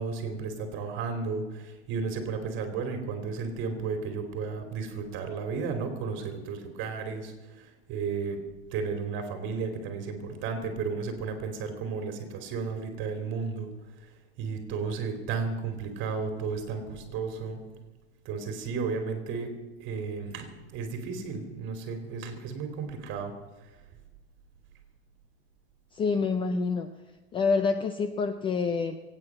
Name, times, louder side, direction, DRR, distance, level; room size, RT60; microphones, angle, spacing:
voice 1, 0.0-8.4 8.7-13.7 14.4-17.6 18.2-23.3, right 5 dB, 35° right, 6 dB, 2.9 m, -33 dB
voice 2, 25.9-26.9 27.3-29.0, left 4 dB, 15° left, 9 dB, 0.5 m, -27 dB
22.5 x 9.0 x 6.1 m, 1.2 s
hypercardioid pair, 135°, 33 cm